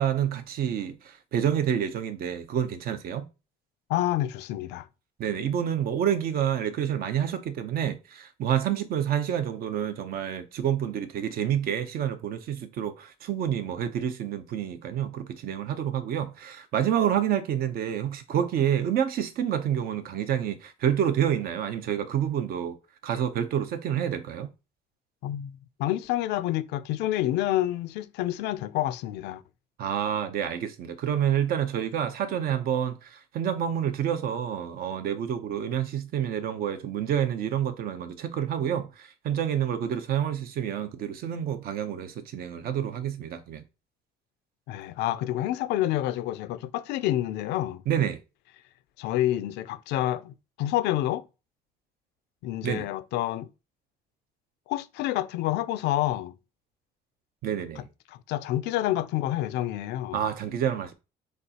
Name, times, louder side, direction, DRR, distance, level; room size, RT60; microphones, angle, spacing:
voice 1, 0.0-3.3 5.2-22.8 23.0-24.5 29.8-43.6 47.9-48.2 52.6-52.9 57.4-57.9 60.1-60.9, right 9 dB, 65° right, 0.7 m, -28 dB
voice 2, 3.9-4.9 25.2-29.4 44.7-47.8 49.0-51.2 52.4-53.5 54.7-56.3 58.1-60.2, left 14 dB, 85° left, 0.4 m, -28 dB
6.4 x 2.4 x 2.8 m
cardioid pair, 110°, 17 cm